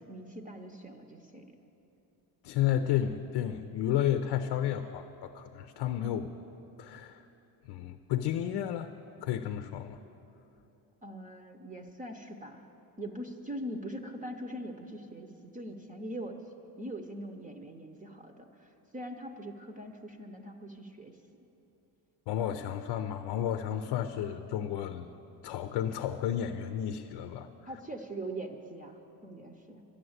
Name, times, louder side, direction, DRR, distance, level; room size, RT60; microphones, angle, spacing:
voice 1, 0.0-1.5 11.0-12.7 13.0-16.4 16.8-21.2 27.7-29.8, right 1 dB, 20° right, 5 dB, 0.7 m, -42 dB
voice 2, 2.4-6.3 6.8-7.2 7.7-8.9 9.2-10.0 22.3-25.1 25.4-27.5, left 10 dB, 90° left, 8 dB, 0.6 m, -32 dB
11.5 x 9.9 x 7.9 m, 2.9 s
cardioid pair, 135°, 40 cm